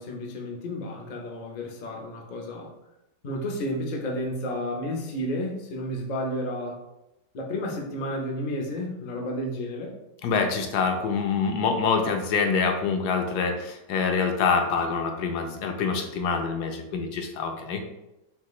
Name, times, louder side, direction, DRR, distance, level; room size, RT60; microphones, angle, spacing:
voice 1, 0.0-2.7 3.2-6.8 7.3-9.9, left 1 dB, 60° left, 0 dB, 0.4 m, -31 dB
voice 2, 10.2-17.8, left 5 dB, 75° left, 4 dB, 1.1 m, -25 dB
5.8 x 2.5 x 3.0 m, 0.92 s
omnidirectional pair, 1.8 m